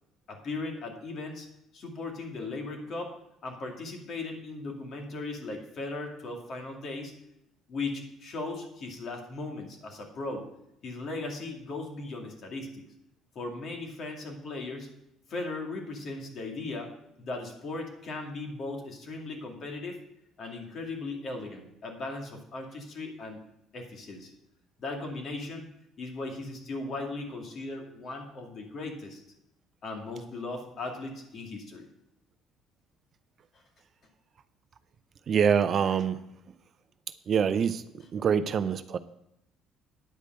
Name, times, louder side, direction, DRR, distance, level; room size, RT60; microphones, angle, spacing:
voice 1, 0.3-1.5 1.7-3.1 3.4-7.1 7.7-10.4 10.8-12.8 13.3-14.9 15.3-16.9 17.2-20.0 20.4-23.4 23.7-24.3 24.8-25.7 26.0-29.2 29.8-31.9, left 3 dB, 45° left, 2 dB, 2.3 m, -37 dB
voice 2, 35.3-36.2 37.3-37.8 38.1-39.0, right 7 dB, 45° right, 12 dB, 0.5 m, -25 dB
9.7 x 5.2 x 7.8 m, 0.81 s
cardioid pair, 120°, 0 cm